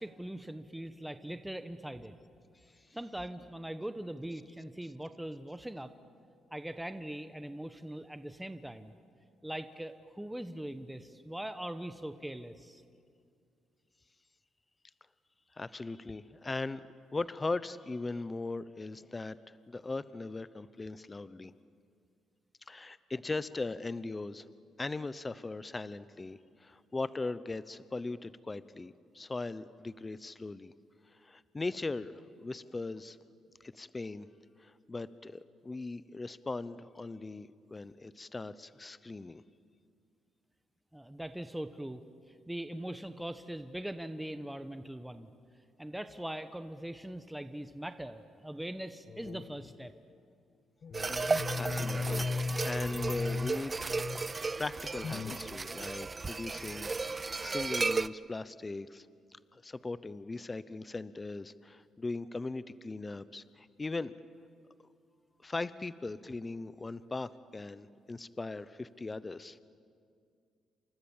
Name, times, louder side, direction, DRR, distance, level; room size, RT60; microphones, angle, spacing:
voice 1, 0.0-2.1 2.9-5.9 6.5-8.9 9.4-12.8 40.9-45.3 45.8-49.9, right 1 dB, 5° right, 10 dB, 1.2 m, -41 dB
voice 2, 15.5-16.8 17.1-21.5 22.7-24.5 24.8-30.7 31.1-33.2 33.6-34.3 34.6-39.4 51.6-53.7 54.6-59.1 59.3-64.1 65.4-69.6, left 3 dB, 25° left, 15 dB, 0.8 m, -39 dB
sound 1, 49.1-49.9 50.8-54.5 55.0-55.4, left 4 dB, 50° left, 1.2 m, -37 dB
sound 2, 50.9-58.1, right 3 dB, 25° right, 0.6 m, -34 dB
29.5 x 27.0 x 7.3 m, 2.3 s
cardioid pair, 90°, 0 cm